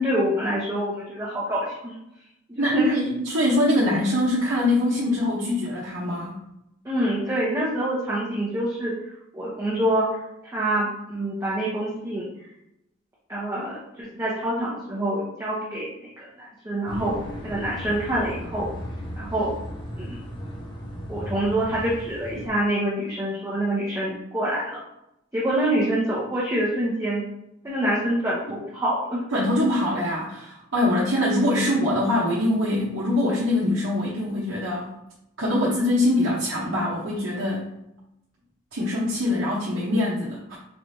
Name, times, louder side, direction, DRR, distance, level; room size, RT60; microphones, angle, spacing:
voice 1, 0.0-1.9 2.5-2.9 6.8-8.9 9.3-10.1 10.4-12.3 13.3-17.2 17.4-18.7 19.2-19.5 20.0-20.2 21.1-24.8 25.3-27.2 27.6-29.2 31.5-31.7, right 1 dB, 15° right, -8 dB, 0.9 m, -26 dB
voice 2, 2.6-6.4 29.3-34.9 35.4-37.7 38.7-40.6, left 1 dB, 85° right, -6 dB, 0.9 m, -23 dB
sound 1, 16.9-22.5, equal, 25° left, 0.7 m, -36 dB
4.5 x 3.3 x 2.7 m, 0.83 s
head